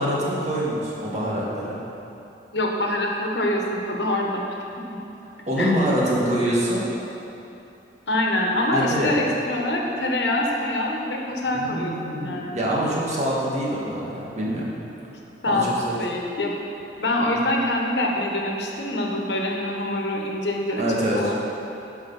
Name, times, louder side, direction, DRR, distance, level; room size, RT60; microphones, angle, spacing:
voice 1, 0.0-1.8 5.5-6.9 8.7-9.1 11.5-14.7 15.5-15.9 20.8-21.3, equal, 40° right, -5 dB, 1.8 m, -25 dB
voice 2, 2.5-4.4 5.6-5.7 8.1-12.6 15.4-16.5 17.0-20.8 21.1-21.4, left 1 dB, 80° left, 0 dB, 1.3 m, -25 dB
12.0 x 5.1 x 5.6 m, 2.8 s
head